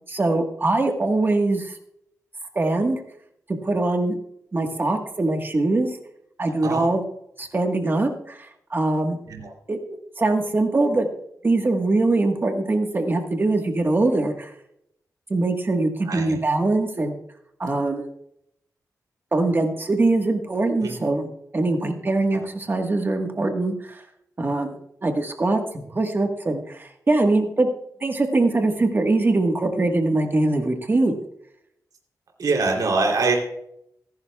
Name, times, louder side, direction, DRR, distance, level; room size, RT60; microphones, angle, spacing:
voice 1, 0.1-1.8 2.5-3.0 3.6-4.2 4.5-5.9 6.4-7.0 7.4-9.2 9.7-9.8 10.2-11.1 11.4-14.5 15.3-17.1 17.6-18.1 19.3-24.0 24.4-27.7 28.0-31.2, right 2 dB, 35° right, 4 dB, 1.4 m, -22 dB
voice 2, 16.1-16.4 20.8-20.9 32.4-33.4, right 3 dB, 80° right, 1 dB, 3.1 m, -23 dB
24.5 x 11.0 x 2.3 m, 0.75 s
wide cardioid pair, 115°, 6 cm